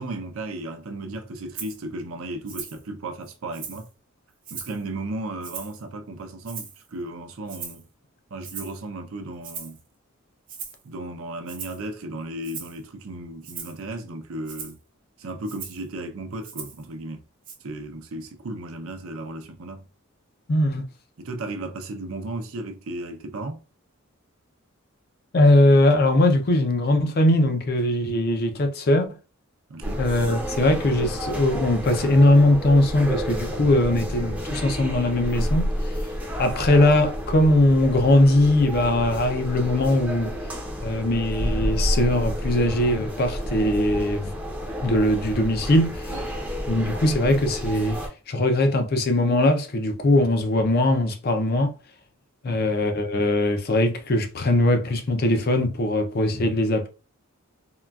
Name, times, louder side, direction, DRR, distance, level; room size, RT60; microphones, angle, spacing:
voice 1, 0.0-3.9 4.5-7.8 8.3-9.8 10.8-14.8 15.2-17.2 17.6-19.9 21.2-23.6 29.7-30.0 46.1-46.3 52.5-52.7, right 2 dB, 70° right, 0.6 m, -35 dB
Rattle (instrument), 1.5-1.8 2.5-2.8 3.2-3.9 4.4-4.8 5.4-5.8 6.4-6.9 7.5-7.8 8.4-8.8 9.4-9.8 10.5-10.8 11.5-11.9 12.4-12.8 13.4-13.8 14.4-14.8 15.4-15.8 16.4-16.8 17.4-17.5, right 6 dB, 40° right, 0.8 m, -38 dB
voice 2, 20.5-20.8 25.3-29.1 30.0-35.7 36.4-40.3 40.8-44.3 44.8-46.2 46.7-51.7 52.4-56.9, left 1 dB, 45° left, 0.5 m, -20 dB
sound 1, 29.8-48.1, equal, 10° right, 0.5 m, -30 dB
3.7 x 2.3 x 2.3 m
head